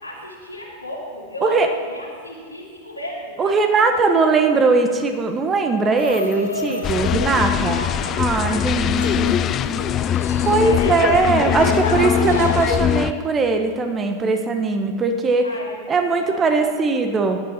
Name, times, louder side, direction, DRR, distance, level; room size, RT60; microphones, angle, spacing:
voice 1, 0.0-4.3 7.3-11.1 15.4-16.8, left 1 dB, 85° left, -3 dB, 2.9 m, -36 dB
voice 2, 3.4-7.8 8.2-9.4 10.4-15.5 15.9-17.4, right 4 dB, 20° right, 6 dB, 1.2 m, -20 dB
sound 1, 6.0-12.8, left 4 dB, 70° left, 1.3 m, -31 dB
sound 2, 6.8-13.1, left 9 dB, 30° left, 0.4 m, -21 dB
16.0 x 11.5 x 4.3 m, 2.1 s
figure-of-eight pair, 90°, 0 cm